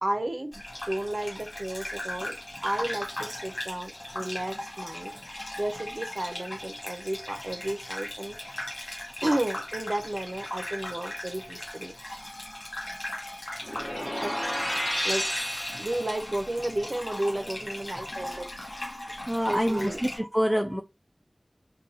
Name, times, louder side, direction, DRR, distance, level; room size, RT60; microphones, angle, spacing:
voice 1, 0.0-2.4 2.6-5.1 5.6-8.6 9.2-11.9 14.2-14.3 15.0-15.2 15.8-18.5 19.5-20.1, right 1 dB, 55° right, 0.7 m, -32 dB
Gurgling / Bathtub (filling or washing), 0.5-20.2, left 1 dB, 55° left, 0.8 m, -38 dB
sound 1, 13.6-16.4, equal, 20° left, 1.1 m, -31 dB
voice 2, 19.2-20.8, equal, 5° right, 0.4 m, -26 dB
2.7 x 2.3 x 3.9 m
wide cardioid pair, 45°, 0 cm